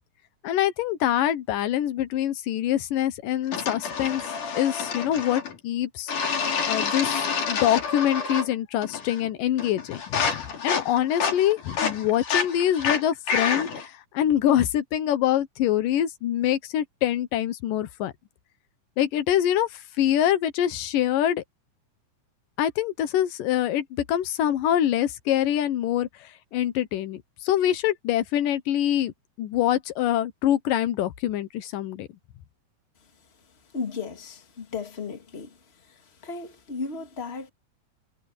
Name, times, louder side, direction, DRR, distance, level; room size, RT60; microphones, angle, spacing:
voice 1, 0.4-4.2 4.5-6.1 6.6-18.1 19.0-19.7 20.0-21.4 22.6-26.1 26.5-32.1, left 11 dB, 85° left, 2.8 m, -25 dB
sound 1, 3.5-5.6 6.1-8.5 8.8-9.3 9.6-13.9, left 6 dB, 70° left, 4.9 m, -28 dB
voice 2, 33.7-35.6 35.9-37.5, left 4 dB, 25° left, 1.9 m, -35 dB
omnidirectional pair, 3.8 m